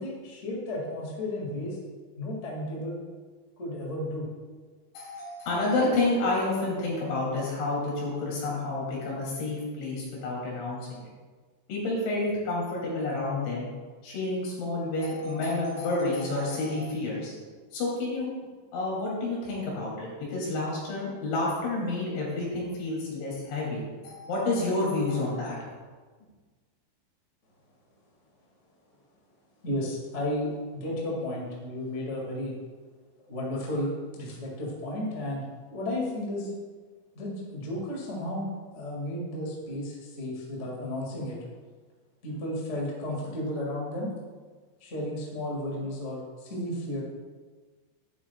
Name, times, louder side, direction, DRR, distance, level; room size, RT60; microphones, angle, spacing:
voice 1, 0.0-1.8 2.2-3.0 3.6-4.3 29.6-32.5 33.3-36.5 37.1-38.5 38.7-41.4 42.2-44.1 44.8-47.0, left 1 dB, 55° left, -3 dB, 0.8 m, -33 dB
voice 2, 5.0-11.0 11.7-13.7 14.0-17.3 17.7-18.3 18.7-25.6, left 2 dB, 75° left, -5 dB, 5.3 m, -29 dB
11.0 x 10.5 x 2.4 m, 1.4 s
omnidirectional pair, 5.4 m